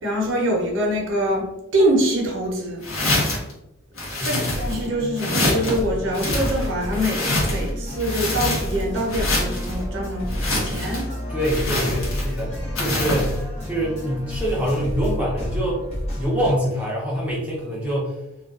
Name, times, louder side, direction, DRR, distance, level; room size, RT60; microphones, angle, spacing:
voice 1, 0.0-2.8 4.2-11.1, equal, 60° right, -1 dB, 0.6 m, -24 dB
sound 1, 2.8-3.5 4.0-4.9 5.2-5.8 6.1-7.7 8.0-8.8 9.1-9.7 10.3-11.0 11.4-12.4 12.8-13.4, left 1 dB, 75° left, 0.8 m, -25 dB
sound 2, 4.5-16.5, equal, 30° left, 0.7 m, -30 dB
voice 2, 11.3-13.4 13.6-15.8 16.2-18.2, equal, 5° right, -5 dB, 0.6 m, -25 dB
2.3 x 2.2 x 2.3 m, 0.86 s
head